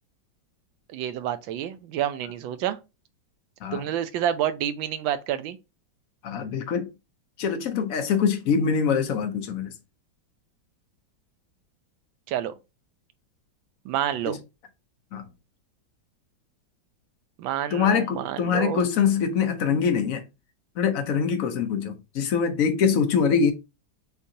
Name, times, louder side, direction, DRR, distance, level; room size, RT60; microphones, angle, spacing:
voice 1, 0.9-2.8 3.7-5.6 12.3-12.5 13.8-14.4 17.4-18.8, right 10 dB, 80° right, 1.3 m, -28 dB
voice 2, 6.2-6.9 7.4-9.7 14.3-14.4 15.1-15.2 17.7-20.2 20.8-23.5, left 6 dB, 70° left, 0.8 m, -24 dB
6.4 x 2.7 x 2.7 m
omnidirectional pair, 2.2 m